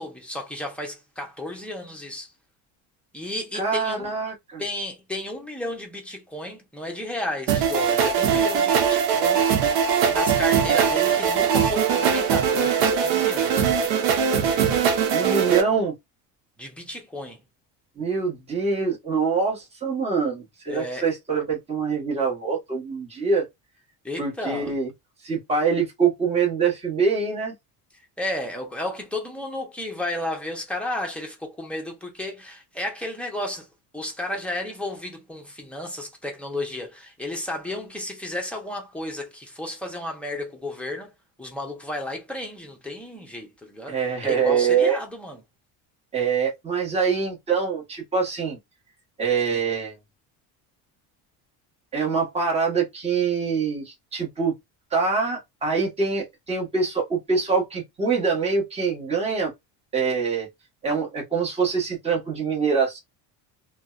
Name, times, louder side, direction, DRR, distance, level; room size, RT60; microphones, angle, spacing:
voice 1, 0.0-2.3 3.1-4.1 4.6-9.5 10.1-13.7 16.6-17.4 20.7-21.1 24.0-24.7 28.2-33.7 33.9-41.1 41.4-44.0 44.2-45.4 49.5-49.6, left 1 dB, 5° left, 0.7 m, -33 dB
voice 2, 3.5-4.6 15.1-15.9 18.0-23.4 24.2-24.9 25.2-27.5 43.9-45.0 46.1-48.6 49.2-50.0 51.9-54.5 54.9-59.5 59.9-60.5 60.8-63.0, right 5 dB, 15° right, 1.2 m, -24 dB
sound 1, 7.5-15.6, right 7 dB, 85° right, 0.8 m, -21 dB
2.5 x 2.1 x 2.3 m
cardioid pair, 130°, 42 cm